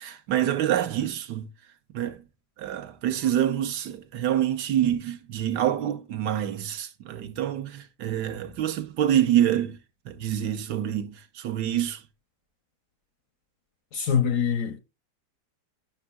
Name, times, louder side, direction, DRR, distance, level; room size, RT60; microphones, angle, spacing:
voice 1, 0.0-1.5 1.9-2.2 2.6-9.8 10.0-12.0, right 11 dB, 80° right, 1.4 m, -26 dB
voice 2, 13.9-14.8, left 7 dB, 70° left, 0.8 m, -24 dB
10.5 x 5.9 x 2.2 m
omnidirectional pair, 1.8 m